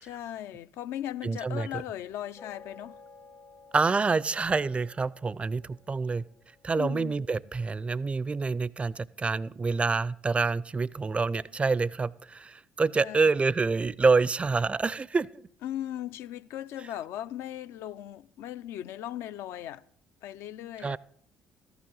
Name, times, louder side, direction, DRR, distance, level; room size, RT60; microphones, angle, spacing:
voice 1, 0.0-3.0 6.8-7.1 13.0-13.3 15.6-19.8 20.2-21.0, left 12 dB, 65° left, 0.4 m, -38 dB
voice 2, 1.2-1.7 3.7-6.2 6.6-15.3 20.8-21.0, right 4 dB, 25° right, 0.4 m, -27 dB
sound 1, 2.4-7.9, left 4 dB, 45° left, 1.0 m, -55 dB
14.0 x 11.0 x 3.9 m
hypercardioid pair, 50°, 5 cm